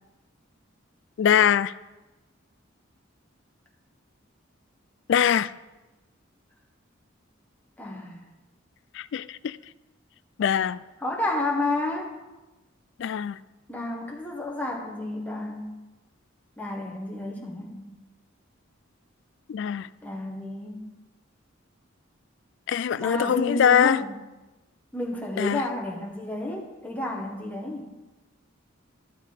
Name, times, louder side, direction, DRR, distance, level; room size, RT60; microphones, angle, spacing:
voice 1, 1.2-1.7 5.1-5.5 8.9-9.6 10.4-10.8 13.0-13.4 19.5-19.9 22.7-24.0 25.4-25.6, left 8 dB, 65° left, 16 dB, 0.3 m, -22 dB
voice 2, 7.8-8.2 11.0-12.1 13.7-15.8 16.6-17.9 20.0-20.9 23.0-24.2 24.9-27.9, left 2 dB, 10° left, -1 dB, 1.6 m, -31 dB
12.5 x 6.5 x 5.2 m, 1.1 s
head